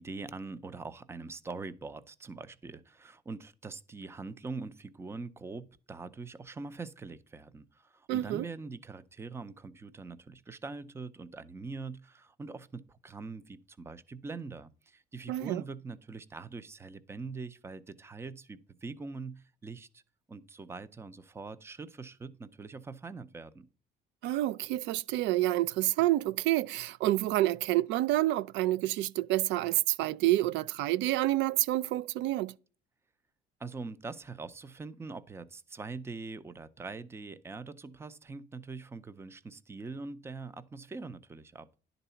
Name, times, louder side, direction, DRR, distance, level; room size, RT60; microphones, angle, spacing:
voice 1, 0.0-20.0 20.3-23.7 33.6-41.8, right 4 dB, 15° right, 0.5 m, -43 dB
voice 2, 8.1-8.5 15.3-15.6 24.2-32.5, right 16 dB, 90° right, 0.4 m, -28 dB
11.0 x 4.0 x 5.5 m
cardioid pair, 145°, 18 cm